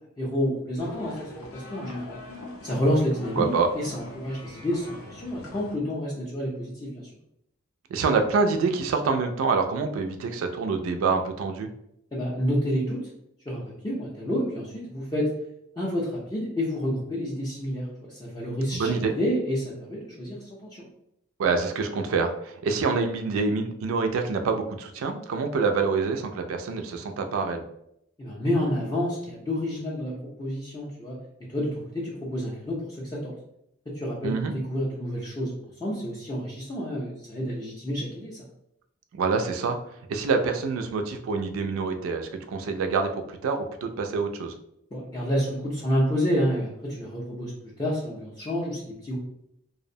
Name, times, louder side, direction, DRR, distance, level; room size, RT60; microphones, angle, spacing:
voice 1, 0.2-2.2 2.6-3.5 3.7-7.0 12.1-13.0 13.5-15.3 15.8-20.8 28.2-30.1 30.4-31.2 31.5-33.3 33.9-38.4 44.9-47.5 47.8-49.2, equal, 20° left, -6 dB, 0.4 m, -29 dB
sound 1, 0.8-5.8, left 2 dB, 85° left, 0.6 m, -42 dB
voice 2, 3.4-3.7 7.9-11.7 18.7-19.1 21.4-27.6 34.2-34.5 39.1-39.8 40.1-44.5, right 4 dB, 70° right, 5 dB, 0.3 m, -26 dB
2.5 x 2.0 x 2.6 m, 0.76 s
head